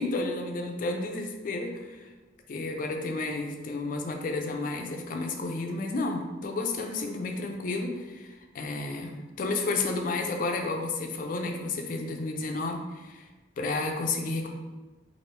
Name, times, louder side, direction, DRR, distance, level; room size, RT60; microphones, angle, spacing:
voice 1, 0.0-2.1 2.5-13.3 13.6-14.6, left 3 dB, 50° left, 3 dB, 0.4 m, -31 dB
2.9 x 2.6 x 3.1 m, 1.2 s
head